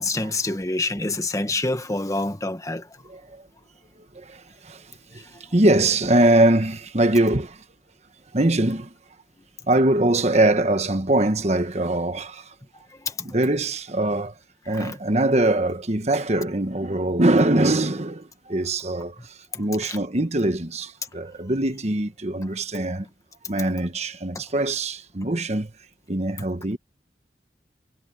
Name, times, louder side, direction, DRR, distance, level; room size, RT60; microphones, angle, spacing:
voice 1, 0.0-2.9 5.1-5.2 13.0-13.4 14.7-15.0 19.5-20.0 24.3-24.4, left 2 dB, 20° left, 1.5 m, -27 dB
voice 2, 3.1-3.4 4.1-4.9 5.1-5.2 5.5-7.6 8.3-8.9 9.7-12.5 13.2-14.3 14.7-23.1 23.5-25.7 26.1-26.8, right 1 dB, 40° right, 1.3 m, -22 dB
head